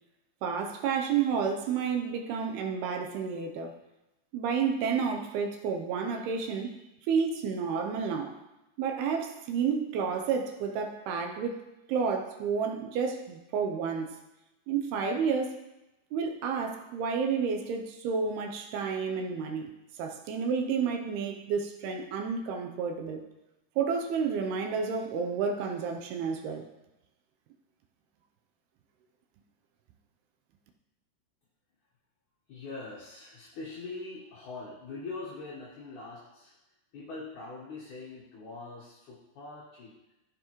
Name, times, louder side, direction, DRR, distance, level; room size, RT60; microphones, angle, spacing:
voice 1, 0.4-3.7 4.3-6.8 7.1-8.4 8.8-11.6 11.9-14.2 14.7-15.6 16.1-23.2 23.8-26.7, right 6 dB, 80° right, 4 dB, 2.5 m, -30 dB
voice 2, 32.5-36.5 36.9-39.9, left 3 dB, 60° left, -5 dB, 2.3 m, -42 dB
14.0 x 7.3 x 3.1 m, 0.96 s
omnidirectional pair, 4.8 m